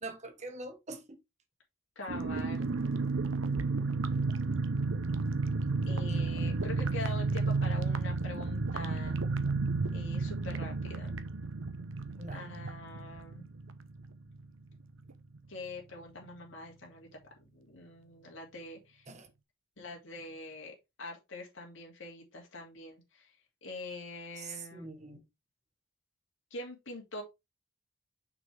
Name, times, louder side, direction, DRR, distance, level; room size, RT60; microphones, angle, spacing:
voice 1, 0.0-1.2 12.1-12.4 19.1-19.3 24.4-25.2, right 3 dB, 35° right, 1.3 m, -44 dB
voice 2, 2.0-2.7 5.9-9.2 9.9-11.2 12.3-13.5 15.5-17.1 17.5-19.1 19.8-23.3 23.6-24.9 26.5-27.2, left 2 dB, 70° left, 2.5 m, -44 dB
sound 1, 2.1-14.4 14.7-14.8 15.1-15.4, right 3 dB, 75° right, 0.8 m, -32 dB
6.2 x 6.2 x 3.4 m
head